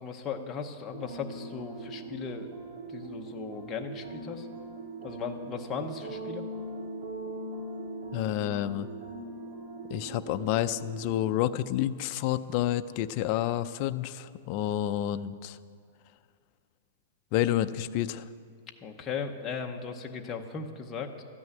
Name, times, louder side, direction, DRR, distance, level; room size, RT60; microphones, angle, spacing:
voice 1, 0.0-2.5 2.9-4.5 5.0-6.4 18.8-21.2, left 5 dB, 15° left, 2 dB, 0.8 m, -37 dB
sound 1, 0.9-11.2, right 2 dB, 60° right, 3.2 m, -41 dB
voice 2, 8.1-8.9 9.9-15.6 17.3-18.3, left 12 dB, 35° left, 11 dB, 0.4 m, -29 dB
13.0 x 6.2 x 9.4 m, 2.1 s
supercardioid pair, 170°, 0 cm